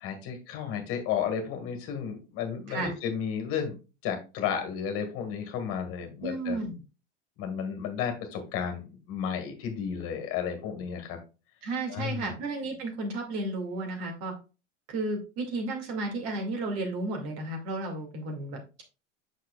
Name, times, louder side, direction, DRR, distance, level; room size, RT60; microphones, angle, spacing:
voice 1, 0.0-3.8 4.0-6.6 7.4-11.2 11.9-12.3, left 7 dB, 40° left, 6 dB, 1.8 m, -33 dB
voice 2, 6.2-6.7 11.6-14.3 14.9-18.8, right 2 dB, 40° right, 3 dB, 2.3 m, -33 dB
8.4 x 6.2 x 2.4 m, 0.32 s
figure-of-eight pair, 90°, 37 cm